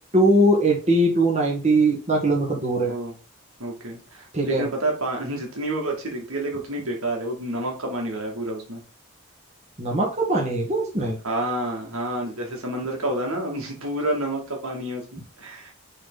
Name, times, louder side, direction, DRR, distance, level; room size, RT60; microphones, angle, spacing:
voice 1, 0.1-2.9 4.3-4.6 9.8-11.2, right 1 dB, 30° right, -1 dB, 1.8 m, -21 dB
voice 2, 3.6-8.8 11.2-15.7, right 1 dB, 85° right, 1 dB, 2.6 m, -29 dB
6.4 x 4.1 x 4.0 m, 0.34 s
head